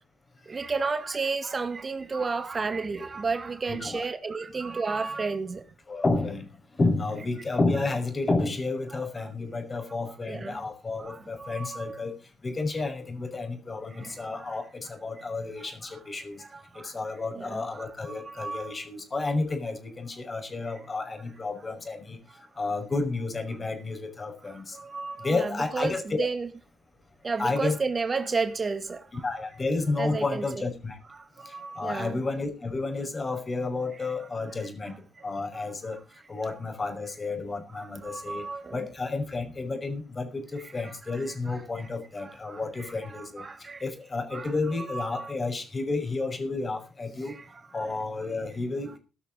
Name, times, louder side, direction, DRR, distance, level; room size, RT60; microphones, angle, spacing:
voice 1, 0.5-5.6 8.9-9.0 10.3-10.6 11.0-12.0 13.9-14.6 15.8-16.0 16.4-16.9 17.4-18.8 22.3-22.4 24.4-26.5 27.2-29.3 30.0-30.7 31.1-32.2 34.9-35.0 35.5-36.0 36.5-36.6 37.7-38.9 40.8-41.9 42.2-43.8 44.3-45.3 47.3-47.9, right 4 dB, 35° right, 2.1 m, -33 dB
voice 2, 3.7-4.1 5.9-6.5 6.8-12.1 12.4-16.4 16.8-22.2 22.6-24.8 25.2-26.2 27.4-27.8 29.1-31.0 31.5-34.9 35.2-36.0 36.3-47.4 47.7-49.0, left 3 dB, 35° left, 5.6 m, -31 dB
17.0 x 12.5 x 4.1 m
hypercardioid pair, 45°, 0 cm